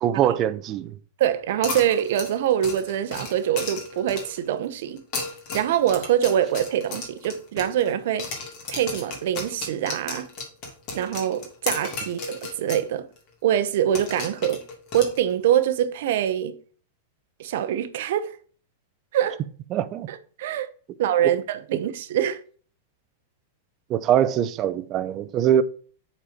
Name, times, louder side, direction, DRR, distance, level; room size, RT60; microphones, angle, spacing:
voice 1, 0.0-1.0 19.7-20.1 21.2-21.3 23.9-25.6, right 10 dB, 35° right, 0.6 m, -22 dB
voice 2, 1.2-5.0 5.5-8.3 8.7-10.3 10.9-13.1 13.4-14.6 14.9-16.6 17.4-18.4 19.1-19.4 20.1-20.7 21.0-22.4, right 10 dB, 65° right, 0.8 m, -24 dB
sound 1, 1.6-4.5 5.0-7.9 8.2-12.9 13.2-13.3 13.9-15.6, left 3 dB, 40° left, 2.6 m, -34 dB
7.6 x 4.4 x 5.1 m
supercardioid pair, 140°, 0 cm